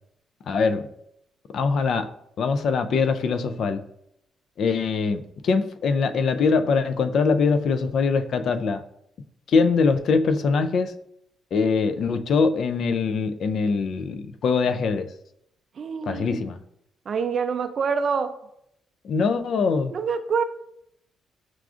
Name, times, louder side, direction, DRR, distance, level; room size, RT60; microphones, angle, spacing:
voice 1, 0.5-0.9 1.5-2.1 2.4-3.8 4.6-8.8 9.5-10.9 11.5-15.1 16.1-16.6 19.0-19.9, left 4 dB, 65° left, 9 dB, 0.3 m, -22 dB
voice 2, 15.8-16.4 17.1-18.3 19.9-20.4, right 5 dB, 50° right, 8 dB, 0.4 m, -26 dB
5.9 x 2.4 x 2.4 m, 0.76 s
cardioid pair, 90°, 0 cm